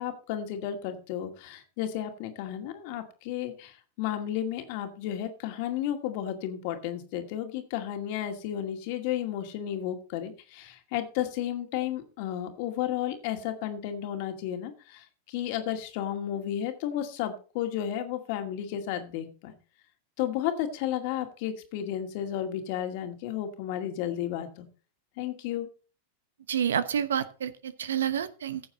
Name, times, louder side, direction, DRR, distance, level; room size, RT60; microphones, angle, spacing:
voice 1, 0.0-19.5 20.2-24.7 25.2-25.7, left 11 dB, 60° left, 6 dB, 2.2 m, -33 dB
voice 2, 26.5-28.6, right 8 dB, 80° right, 15 dB, 0.9 m, -29 dB
15.0 x 7.0 x 4.0 m, 0.37 s
hypercardioid pair, 105°, 0 cm